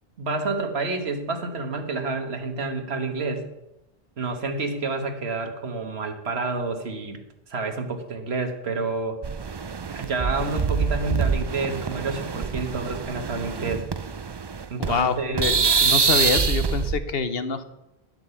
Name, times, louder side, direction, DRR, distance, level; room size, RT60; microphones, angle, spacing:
voice 1, 0.2-3.5 4.2-7.2 7.5-9.2 9.9-13.9 14.7-15.5, right 3 dB, 85° right, 6 dB, 1.6 m, -29 dB
sound 1, 9.2-15.1 15.4-17.0, right 5 dB, 35° right, 0.4 m, -25 dB
voice 2, 14.8-17.6, left 5 dB, 70° left, 11 dB, 1.1 m, -26 dB
10.5 x 7.9 x 6.9 m, 0.93 s
omnidirectional pair, 1.1 m